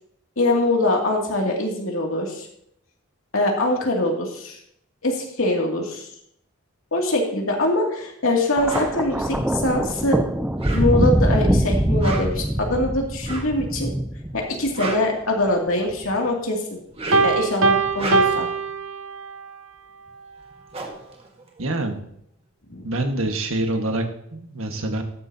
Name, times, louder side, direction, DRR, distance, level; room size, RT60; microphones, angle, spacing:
voice 1, 0.4-2.5 3.3-4.6 5.0-6.1 6.9-10.2 10.7-13.9 14.3-16.8 17.2-18.5 22.7-22.9, left 1 dB, 85° left, 0 dB, 2.6 m, -23 dB
Thunder, 8.6-14.9 15.9-16.2, right 1 dB, 5° right, 0.4 m, -23 dB
sound 1, 8.6-8.9 10.4-11.2 11.9-12.5 13.2-13.6 14.5-15.8 16.8-17.4 17.8-18.5 20.1-20.2 20.4-22.1, right 3 dB, 30° right, 1.7 m, -33 dB
Piano, 17.1-19.5, right 3 dB, 65° right, 0.9 m, -21 dB
voice 2, 21.6-22.0 22.8-24.0 24.3-25.0, right 1 dB, 85° right, 4 dB, 1.6 m, -25 dB
13.0 x 9.8 x 2.8 m, 0.72 s
head